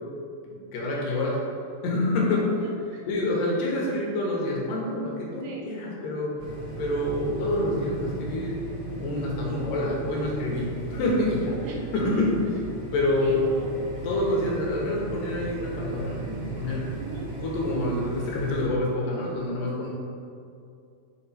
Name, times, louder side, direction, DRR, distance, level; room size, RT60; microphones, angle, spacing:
voice 1, 0.4-1.4 1.8-2.5 3.1-6.5 6.8-8.6 9.0-11.6 11.9-12.3 12.9-13.5 14.0-16.8 17.4-19.9, left 2 dB, 80° left, -3 dB, 2.8 m, -27 dB
voice 2, 2.3-3.1 5.4-5.7 9.6-9.9 11.6-12.2 13.2-13.7 17.0-17.3, right 3 dB, 85° right, -1 dB, 2.7 m, -40 dB
sound 1, 6.4-18.6, right 3 dB, 65° right, 0.8 m, -37 dB
6.5 x 4.5 x 4.3 m, 2.4 s
omnidirectional pair, 3.9 m